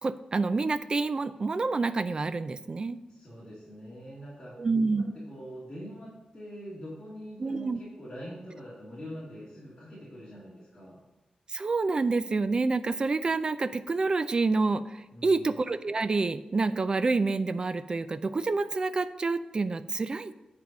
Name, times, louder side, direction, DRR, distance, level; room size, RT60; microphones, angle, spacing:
voice 1, 0.0-3.0 4.6-5.1 7.4-7.8 11.5-15.0 15.2-20.3, right 3 dB, 35° right, 12 dB, 0.4 m, -28 dB
voice 2, 3.1-4.6 4.9-11.0 15.1-15.5, equal, 25° left, -9 dB, 2.6 m, -44 dB
9.3 x 4.5 x 5.1 m, 1.0 s
wide cardioid pair, 125°, 2 cm